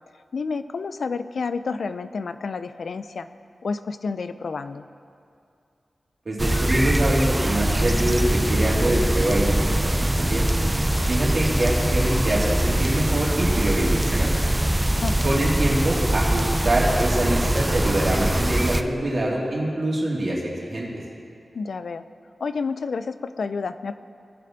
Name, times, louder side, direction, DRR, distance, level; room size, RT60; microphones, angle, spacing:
voice 1, 0.3-3.3 3.6-4.9 15.0-15.3 21.5-22.0 22.4-24.0, left 4 dB, 75° left, 11 dB, 0.4 m, -30 dB
voice 2, 6.3-10.4 11.1-14.3 15.2-20.4 20.7-20.9, right 1 dB, 55° right, -4 dB, 2.6 m, -24 dB
sound 1, 6.4-18.8, right 1 dB, 10° right, 0.5 m, -22 dB
18.5 x 6.7 x 3.9 m, 2.5 s
wide cardioid pair, 100°, 0 cm